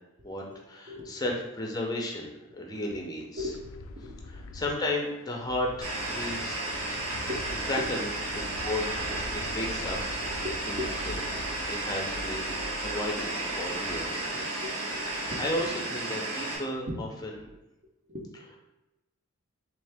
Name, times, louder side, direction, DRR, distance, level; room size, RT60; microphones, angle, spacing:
voice 1, 0.2-3.5 4.3-6.6 7.7-8.1 8.6-10.0 10.7-10.8 11.0-11.1 11.7-14.3 15.2-17.3, left 1 dB, 20° left, 0 dB, 0.6 m, -34 dB
voice 2, 0.9-1.3 3.4-4.2 7.3-7.5 7.8-8.0 9.1-9.7 10.3-11.4 14.3-15.8 16.9-17.0 18.1-18.6, left 2 dB, 40° right, 0 dB, 0.7 m, -39 dB
sound 1, 3.4-16.6, left 2 dB, 70° left, 0.3 m, -45 dB
sound 2, 5.8-16.6, right 2 dB, 90° right, 1.3 m, -33 dB
3.7 x 3.1 x 3.4 m, 0.98 s
head